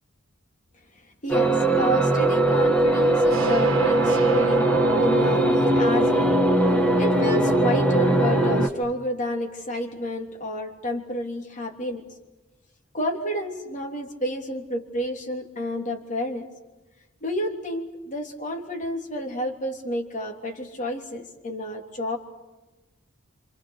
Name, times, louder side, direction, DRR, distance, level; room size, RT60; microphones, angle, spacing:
voice 1, 1.2-4.6 5.0-6.4 7.0-12.0 12.9-16.5 17.2-22.2, equal, 40° left, 3 dB, 3.4 m, -30 dB
sound 1, 1.3-8.7, right 1 dB, 10° left, 2.2 m, -20 dB
sound 2, 3.3-8.7, right 1 dB, 75° right, 1.4 m, -29 dB
28.0 x 27.0 x 6.7 m, 1.1 s
head